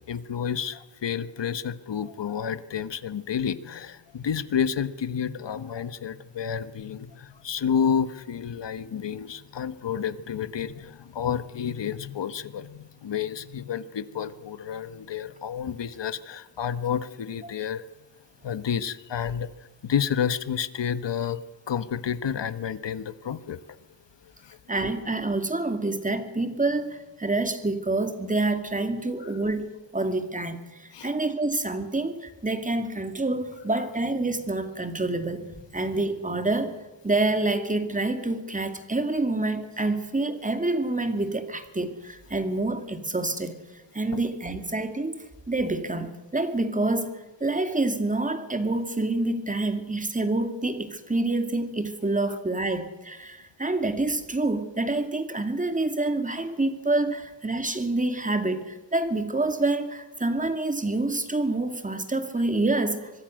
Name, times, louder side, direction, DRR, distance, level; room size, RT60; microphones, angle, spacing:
voice 1, 0.1-17.8 18.4-19.5 19.8-21.4 21.7-23.6 24.4-24.6 30.9-31.1 44.1-44.2, left 8 dB, 70° left, 13 dB, 1.4 m, -30 dB
voice 2, 24.7-29.7 29.9-36.8 37.0-43.6 43.9-47.1 47.4-63.1, right 2 dB, 15° right, 8 dB, 2.4 m, -27 dB
25.0 x 22.0 x 6.5 m, 1.0 s
wide cardioid pair, 120°, 45 cm